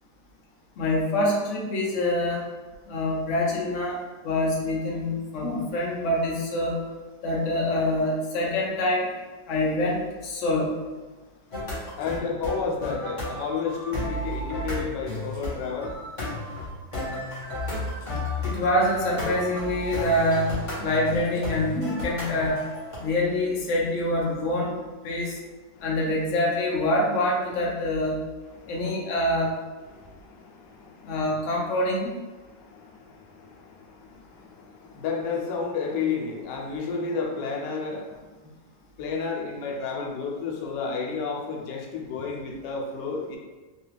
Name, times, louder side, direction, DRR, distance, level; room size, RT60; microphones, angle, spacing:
voice 1, 0.8-2.4 2.9-6.8 7.2-9.1 9.5-10.8 18.4-22.6 23.0-24.8 25.0-25.4 25.8-28.2 28.7-29.5 31.0-32.1, left 1 dB, 60° left, -3 dB, 0.9 m, -25 dB
sound 1, 11.5-23.0, left 1 dB, 25° left, 0.8 m, -33 dB
voice 2, 12.0-15.9 25.7-26.0 28.5-29.0 29.8-31.4 32.4-38.5 39.0-43.4, left 5 dB, 85° left, 0 dB, 1.2 m, -32 dB
3.2 x 2.2 x 3.2 m, 1.3 s
omnidirectional pair, 1.8 m